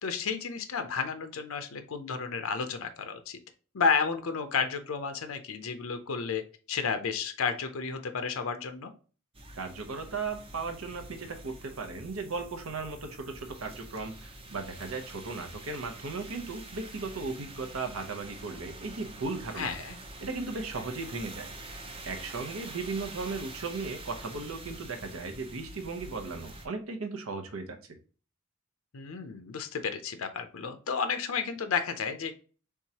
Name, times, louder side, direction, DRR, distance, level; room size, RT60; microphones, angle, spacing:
voice 1, 0.0-3.4 3.7-6.4 6.7-8.9 19.6-20.0 28.9-32.3, left 5 dB, 75° left, 8 dB, 0.5 m, -32 dB
sound 1, 9.3-26.7, right 2 dB, 25° right, 0.6 m, -46 dB
voice 2, 9.5-19.7 20.2-21.5 22.0-27.8, right 4 dB, 80° right, 5 dB, 0.8 m, -36 dB
4.6 x 3.6 x 2.8 m, 0.37 s
head